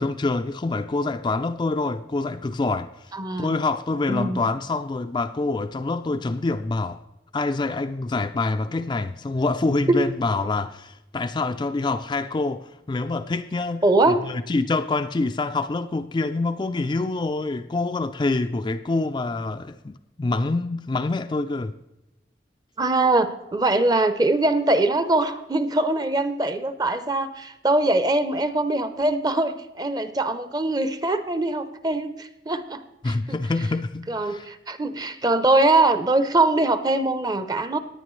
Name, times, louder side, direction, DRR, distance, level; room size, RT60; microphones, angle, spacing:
voice 1, 0.0-3.1 3.4-7.0 7.3-21.7 33.0-34.5, left 3 dB, 25° left, 0.3 m, -26 dB
voice 2, 3.1-3.5 4.1-4.4 9.9-10.1 13.8-14.2 22.8-33.4 34.1-37.8, right 2 dB, 20° right, 0.6 m, -22 dB
18.0 x 10.0 x 3.1 m
head